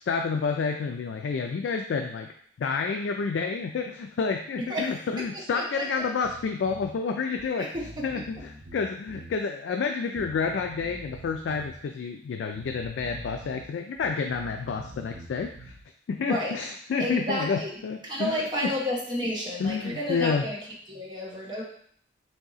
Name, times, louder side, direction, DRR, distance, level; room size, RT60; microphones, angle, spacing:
voice 1, 0.1-2.3 2.6-7.7 8.0-15.8 16.1-18.7 19.6-20.5, left 5 dB, 65° left, 4 dB, 0.3 m, -29 dB
Bass guitar, 6.2-6.9 7.4-7.5 7.7-9.4 10.2-11.8 12.5-13.7 14.0-15.8, right 1 dB, 65° right, 0.8 m, -45 dB
voice 2, 7.6-8.0 16.3-16.5 17.0-17.7 18.0-20.6 20.9-21.6, left 1 dB, 25° right, -4 dB, 1.0 m, -31 dB
3.8 x 2.7 x 3.9 m, 0.63 s
head